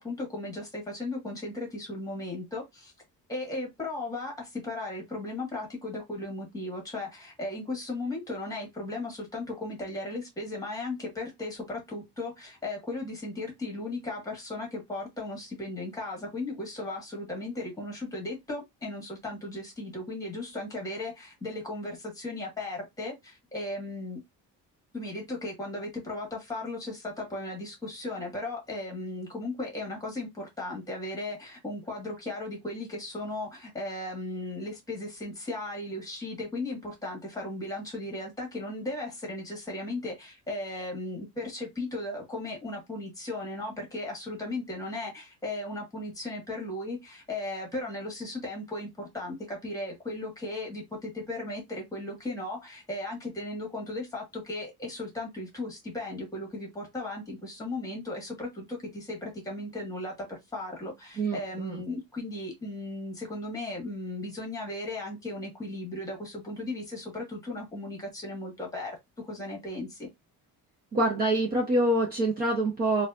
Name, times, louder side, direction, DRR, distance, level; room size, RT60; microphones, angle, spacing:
voice 1, 0.0-2.9 3.3-24.2 24.9-70.1, left 2 dB, 10° left, 1.5 m, -36 dB
voice 2, 61.2-61.8 70.9-73.1, right 1 dB, 25° right, 0.8 m, -26 dB
4.0 x 2.4 x 2.4 m
cardioid pair, 180°, 33 cm